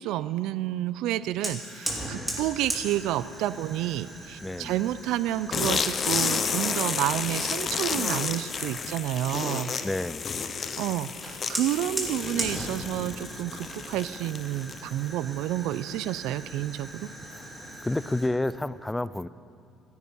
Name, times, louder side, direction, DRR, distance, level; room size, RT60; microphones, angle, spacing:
voice 1, 0.0-9.7 10.8-17.1, right 13 dB, 75° right, 15 dB, 0.4 m, -30 dB
Fire, 1.4-9.1 11.2-18.3, right 1 dB, 10° right, 2.6 m, -39 dB
voice 2, 4.4-4.9 9.8-10.2 17.2-19.3, left 1 dB, 10° left, 17 dB, 0.3 m, -31 dB
sound 1, 5.5-15.0, left 5 dB, 30° left, 0.8 m, -31 dB
27.0 x 9.5 x 5.5 m, 2.5 s
cardioid pair, 145°, 0 cm